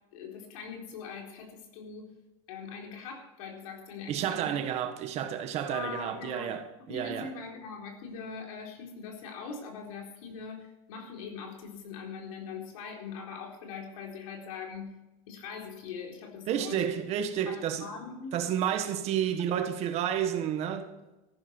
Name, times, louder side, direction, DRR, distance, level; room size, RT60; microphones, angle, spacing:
voice 1, 0.1-2.1 2.5-4.6 5.6-6.5 6.9-15.0 15.3-16.8 17.1-18.4, left 5 dB, 80° left, 4.1 m, -42 dB
voice 2, 4.1-7.3 16.5-17.9 18.3-20.9, right 9 dB, 35° right, 1.4 m, -31 dB
14.5 x 12.0 x 4.5 m
supercardioid pair, 160°, 18 cm